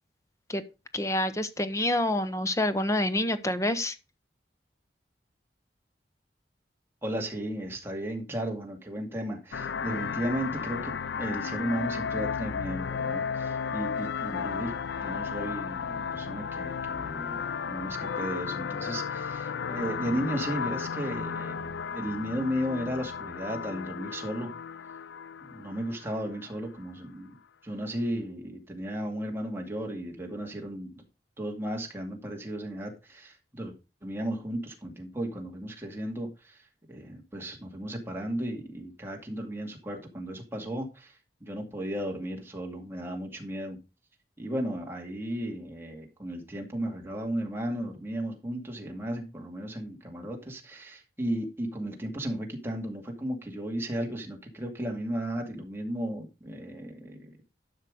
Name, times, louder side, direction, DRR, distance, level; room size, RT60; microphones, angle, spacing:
voice 1, 0.9-4.0, left 1 dB, 15° left, 0.9 m, -27 dB
voice 2, 7.0-24.5 25.5-27.3 27.6-31.0 31.4-33.7 34.0-36.6 36.9-41.1 41.4-43.8 44.4-57.5, equal, 15° right, 2.3 m, -35 dB
sound 1, 9.5-26.5, left 6 dB, 75° left, 0.4 m, -34 dB
12.0 x 5.9 x 5.0 m
head